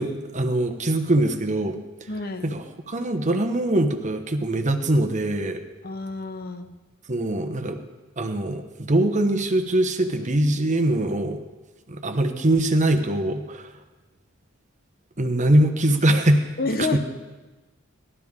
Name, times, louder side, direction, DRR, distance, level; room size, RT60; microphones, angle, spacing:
voice 1, 0.0-1.8 2.4-5.6 7.1-7.8 8.2-11.4 11.9-13.7 15.2-16.5 16.8-17.0, right 1 dB, 35° right, 6 dB, 1.0 m, -22 dB
voice 2, 2.1-2.5 5.8-6.8 16.6-17.0, left 3 dB, 45° left, 8 dB, 0.8 m, -28 dB
17.5 x 12.5 x 3.7 m, 1.2 s
head